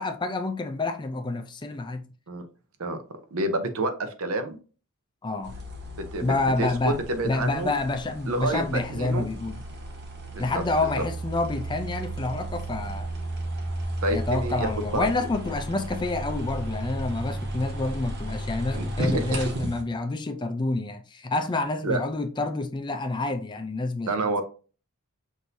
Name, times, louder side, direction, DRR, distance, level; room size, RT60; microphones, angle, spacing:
voice 1, 0.0-2.0 5.2-5.6 6.2-7.0 7.2-9.6 10.4-13.1 14.1-24.2, left 2 dB, 20° left, 0.4 m, -28 dB
voice 2, 3.3-4.6 5.9-7.7 8.3-9.3 10.3-10.6 11.0-11.1 14.0-15.1 18.7-19.4 21.8-22.0 24.1-24.4, right 2 dB, 75° right, 0.7 m, -28 dB
sound 1, 5.4-19.8, right 1 dB, 50° right, 1.1 m, -34 dB
6.1 x 2.7 x 2.6 m
head